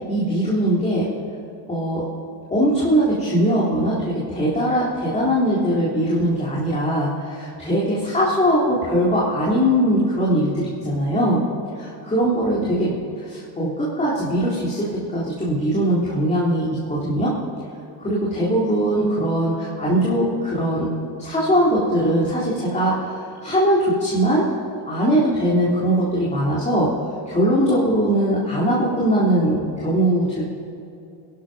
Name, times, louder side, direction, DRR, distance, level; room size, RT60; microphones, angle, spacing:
voice 1, 0.1-1.1 1.7-2.0 2.5-11.4 11.8-12.9 13.3-17.3 18.0-20.9 21.2-24.5 24.9-26.9 27.3-30.4, right 1 dB, 15° left, -7 dB, 3.6 m, -21 dB
22.5 x 11.5 x 5.2 m, 2.7 s
cardioid pair, 130°, 42 cm